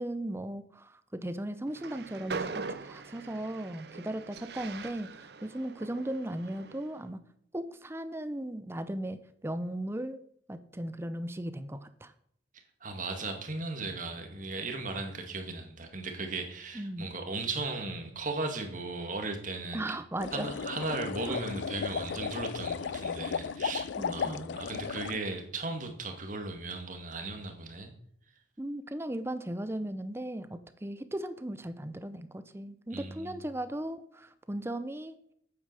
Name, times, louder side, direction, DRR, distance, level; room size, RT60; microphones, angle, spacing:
voice 1, 0.0-7.2 7.5-10.2 10.5-12.1 16.7-17.1 19.7-20.5 21.3-21.4 24.0-24.6 28.6-35.2, right 1 dB, 15° right, 12 dB, 0.6 m, -37 dB
Train, 1.7-7.0, right 4 dB, 60° right, 0.7 m, -42 dB
voice 2, 12.8-19.8 20.3-27.9 32.9-33.4, right 3 dB, 45° right, 5 dB, 2.0 m, -37 dB
sound 1, 20.2-25.2, left 6 dB, 80° left, 0.4 m, -35 dB
9.0 x 8.4 x 6.8 m, 0.67 s
head